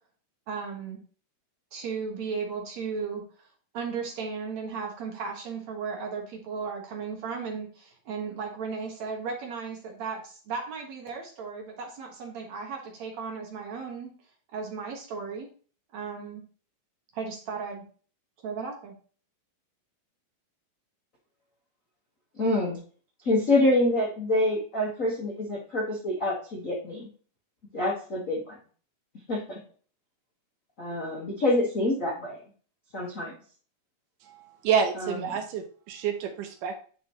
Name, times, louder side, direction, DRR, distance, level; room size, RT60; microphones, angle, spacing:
voice 1, 0.5-1.0 1.7-3.3 3.7-14.1 14.5-15.5 15.9-16.4 17.1-17.8 18.4-18.9, right 5 dB, 55° right, 0 dB, 2.6 m, -35 dB
voice 2, 22.4-22.8 23.2-27.1 27.7-28.6 29.3-29.6 30.8-32.4 32.9-33.3 35.0-35.2, left 1 dB, 65° left, -3 dB, 0.8 m, -26 dB
voice 3, 34.2-36.8, right 7 dB, 75° right, 6 dB, 2.2 m, -28 dB
10.0 x 4.6 x 3.0 m, 0.41 s
omnidirectional pair, 4.1 m